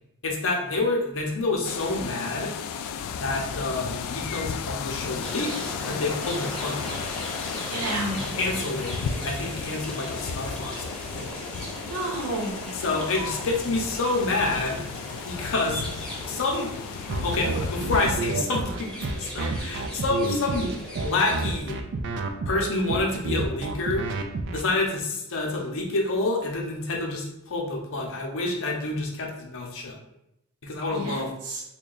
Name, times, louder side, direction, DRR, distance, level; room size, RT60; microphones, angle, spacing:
voice 1, 0.2-2.5 3.2-5.5 5.8-7.0 8.4-11.3 12.8-14.8 15.2-15.8 16.3-16.7 17.2-21.8 22.5-24.1 24.5-30.0 30.6-31.3, left 2 dB, 65° left, 0 dB, 0.7 m, -28 dB
sound 1, 1.6-18.2, left 6 dB, 85° left, 0.3 m, -34 dB
sound 2, 5.2-21.6, right 1 dB, 5° left, 0.8 m, -39 dB
voice 2, 7.7-8.2 11.8-12.6 19.4-19.7 30.9-31.6, right 2 dB, 85° right, -1 dB, 0.9 m, -31 dB
sound 3, 17.1-24.6, right 3 dB, 55° right, 0.4 m, -29 dB
3.3 x 2.2 x 3.8 m, 0.84 s
head